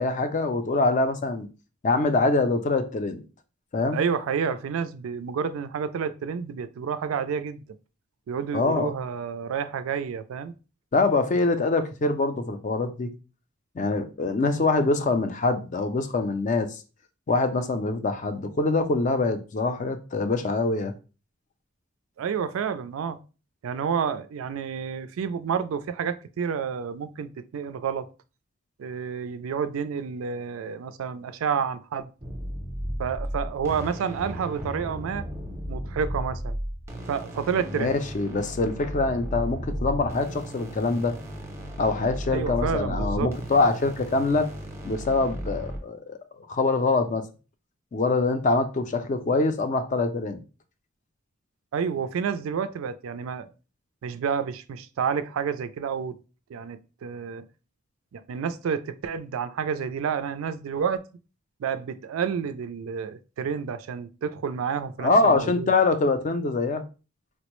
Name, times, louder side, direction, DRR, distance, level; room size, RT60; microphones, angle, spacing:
voice 1, 0.0-1.5 1.8-3.2 3.7-4.0 8.5-8.9 10.9-13.1 13.8-16.8 17.3-20.9 37.7-41.2 41.8-44.5 44.8-47.3 47.9-50.4 65.0-66.8, left 3 dB, 35° left, 0.4 m, -24 dB
voice 2, 3.9-7.6 8.3-10.5 22.2-23.2 23.6-28.1 28.8-32.1 33.0-35.3 35.7-36.6 37.1-38.0 42.3-43.3 51.7-53.5 54.0-56.2 56.5-57.4 58.1-61.0 61.6-65.7, right 6 dB, 80° right, 0.3 m, -29 dB
sound 1, 32.2-45.8, equal, 15° right, 0.6 m, -35 dB
4.3 x 2.0 x 3.0 m
head